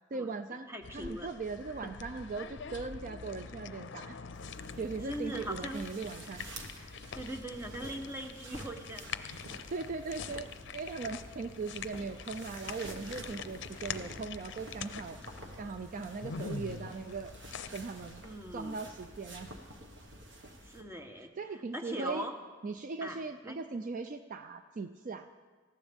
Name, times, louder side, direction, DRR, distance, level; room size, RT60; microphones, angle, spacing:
voice 1, 0.1-0.7 0.9-4.2 4.8-6.5 9.7-15.2 15.6-17.3 17.7-18.2 18.5-19.5 21.4-22.3 22.6-25.3, right 4 dB, 45° right, 9 dB, 0.4 m, -39 dB
voice 2, 0.7-1.3 5.0-5.9 6.8-9.1 18.2-18.8 20.6-22.3 23.0-23.6, right 1 dB, 15° right, 4 dB, 1.1 m, -41 dB
sound 1, 0.8-18.2, left 6 dB, 60° left, 0.6 m, -45 dB
sound 2, 4.3-20.8, right 1 dB, 65° right, 1.6 m, -49 dB
19.0 x 15.0 x 3.5 m, 1.4 s
head